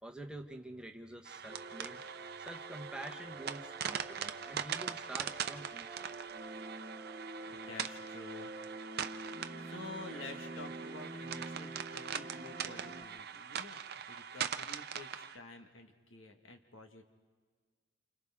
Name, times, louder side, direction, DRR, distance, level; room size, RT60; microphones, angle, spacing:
voice 1, 0.0-2.0 2.4-6.2 7.3-7.4, right 1 dB, 5° right, 2 dB, 1.2 m, -47 dB
sound 1, 1.2-15.4, right 8 dB, 55° right, 0.7 m, -42 dB
sound 2, 1.5-13.0, right 2 dB, 30° right, 1.3 m, -47 dB
voice 2, 7.4-8.5 9.2-17.0, left 2 dB, 90° left, 4 dB, 1.7 m, -50 dB
30.0 x 28.5 x 3.7 m, 1.5 s
head